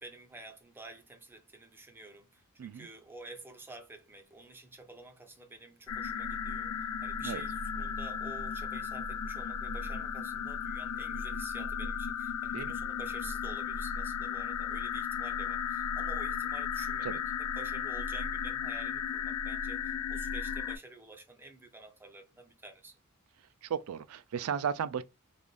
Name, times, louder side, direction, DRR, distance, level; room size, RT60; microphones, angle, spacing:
voice 1, 0.0-23.0, right 2 dB, 10° right, 0.5 m, -50 dB
sound 1, 5.9-20.8, left 7 dB, 75° left, 0.4 m, -35 dB
voice 2, 23.6-25.0, right 8 dB, 70° right, 0.3 m, -35 dB
3.3 x 2.5 x 2.2 m
head